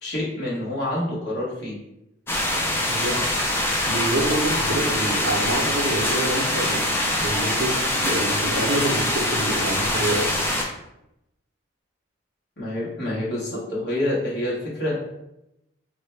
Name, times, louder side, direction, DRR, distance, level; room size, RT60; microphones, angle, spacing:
voice 1, 0.0-1.7 12.6-14.9, left 1 dB, 55° left, -7 dB, 1.3 m, -27 dB
sound 1, 2.3-10.6, left 1 dB, 10° left, 0.3 m, -24 dB
voice 2, 2.9-3.2 3.9-10.5, right 1 dB, 55° right, 0 dB, 0.6 m, -27 dB
3.8 x 2.1 x 3.2 m, 0.87 s
head